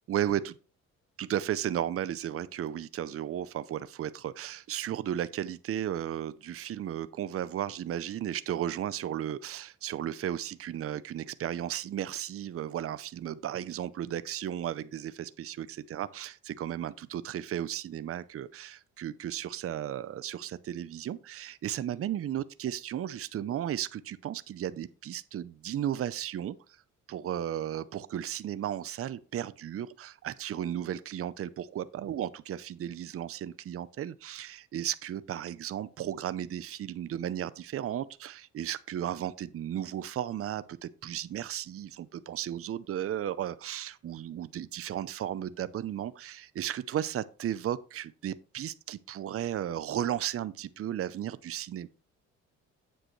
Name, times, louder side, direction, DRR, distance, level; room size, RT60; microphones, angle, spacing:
voice 1, 0.1-0.6 1.2-26.6 27.1-51.9, right 11 dB, 50° right, 0.6 m, -34 dB
8.7 x 7.8 x 3.1 m
cardioid pair, 90°, 30 cm